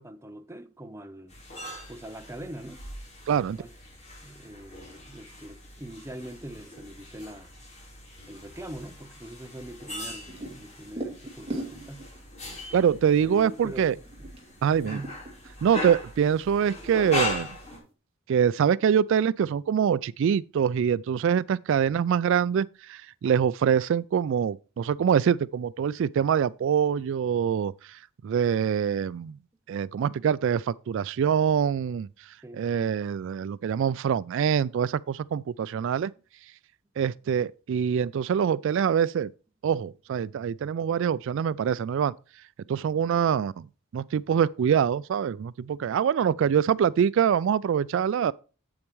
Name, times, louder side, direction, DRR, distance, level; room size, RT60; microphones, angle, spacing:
voice 1, 0.0-1.4 1.9-2.9 3.4-3.7 4.2-7.5 8.3-12.1 13.2-14.0 14.8-15.2 32.4-32.6, right 1 dB, 15° right, 0.7 m, -42 dB
sound 1, 1.3-17.8, left 1 dB, 35° left, 3.7 m, -39 dB
voice 2, 3.3-3.6 12.7-14.0 14.6-15.0 15.6-17.5 18.3-29.4 29.7-32.1 32.5-36.1 37.0-39.3 39.6-42.1 42.7-43.7 43.9-48.3, right 8 dB, 65° right, 0.3 m, -24 dB
sound 2, 10.0-12.2 12.5-12.6 13.1-13.6 13.9-15.6 15.9-16.8 17.1-17.2 17.5-17.9, right 1 dB, 30° right, 2.4 m, -39 dB
8.7 x 8.0 x 3.1 m
head